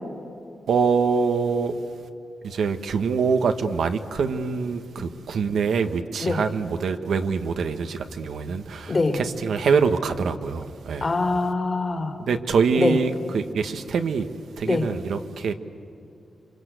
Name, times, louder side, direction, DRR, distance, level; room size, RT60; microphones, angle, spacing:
voice 1, 0.7-1.8 2.4-11.1 12.3-14.3 14.5-15.5, right 5 dB, 85° right, 1.4 m, -24 dB
voice 2, 8.9-9.2 11.0-12.1 12.8-13.0 14.6-14.8, left 3 dB, 35° left, 2.9 m, -23 dB
27.5 x 26.0 x 8.2 m
wide cardioid pair, 100°, 0 cm